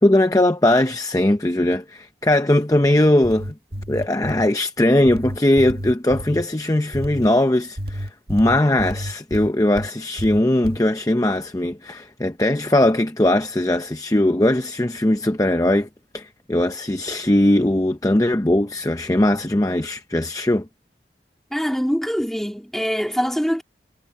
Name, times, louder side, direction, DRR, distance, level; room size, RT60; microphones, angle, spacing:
voice 1, 0.0-3.5 3.9-15.9 16.1-20.7, left 1 dB, 20° left, 0.7 m, -19 dB
sound 1, 3.1-4.5 5.1-6.5 6.9-7.3 7.8-9.9 10.2-10.8, equal, 65° right, 1.9 m, -30 dB
voice 2, 21.5-23.6, equal, ahead, 3.6 m, -23 dB
head